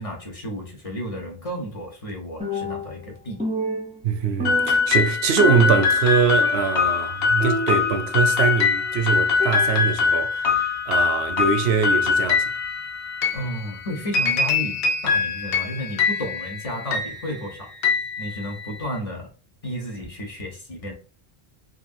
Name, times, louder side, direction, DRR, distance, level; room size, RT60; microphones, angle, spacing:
voice 1, 0.0-3.5 13.3-17.7 18.2-19.3 19.6-20.9, equal, 40° left, 0.8 m, -32 dB
Percussion, 2.4-3.1 3.4-5.1 5.4-6.1 6.4-6.9 7.4-9.0 9.4-10.1, equal, 10° right, 0.5 m, -30 dB
voice 2, 4.0-12.5, right 6 dB, 85° right, 0.8 m, -23 dB
sound 1, 4.4-18.9, left 5 dB, 70° left, 0.8 m, -23 dB
3.0 x 2.5 x 2.5 m
omnidirectional pair, 1.0 m